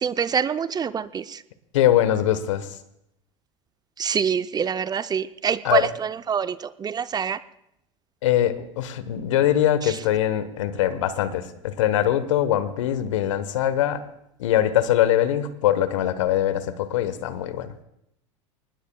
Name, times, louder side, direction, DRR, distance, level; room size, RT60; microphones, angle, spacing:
voice 1, 0.0-1.2 4.0-5.8 6.3-6.6 6.8-7.4, right 7 dB, 25° right, 14 dB, 0.5 m, -25 dB
voice 2, 1.7-2.8 5.6-5.9 8.2-14.0 14.4-17.7, left 11 dB, 75° left, 13 dB, 1.2 m, -22 dB
23.5 x 20.0 x 2.3 m, 0.79 s
hypercardioid pair, 80°, 16 cm